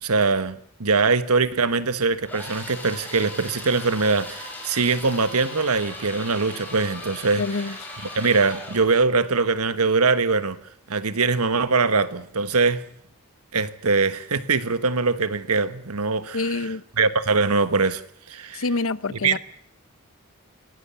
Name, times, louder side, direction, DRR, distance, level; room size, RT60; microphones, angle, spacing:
voice 1, 0.0-7.4 8.1-10.6 10.9-12.8 13.5-16.7 17.0-18.0 18.3-18.6 19.1-19.4, right 4 dB, 90° right, 1.3 m, -22 dB
sound 1, 2.3-8.9, left 2 dB, 10° left, 6.6 m, -38 dB
voice 2, 7.4-7.8 16.3-16.8 18.5-19.4, left 3 dB, 65° left, 0.8 m, -26 dB
25.0 x 17.5 x 8.4 m
head